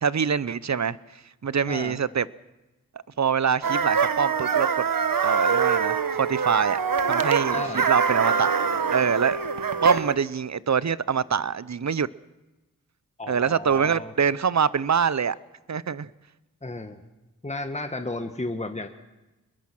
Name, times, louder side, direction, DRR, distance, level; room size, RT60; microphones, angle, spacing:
voice 1, 0.0-2.3 3.2-4.9 5.2-6.8 7.1-8.5 8.9-9.4 9.8-12.1 13.3-15.4 15.7-16.1, right 7 dB, 55° right, 0.7 m, -24 dB
sound 1, 3.6-10.2, right 6 dB, 80° right, 1.2 m, -24 dB
voice 2, 7.5-7.9 13.2-14.1 16.6-17.0 17.4-18.9, left 2 dB, 20° left, 1.5 m, -33 dB
24.5 x 21.5 x 6.1 m
wide cardioid pair, 60°, 34 cm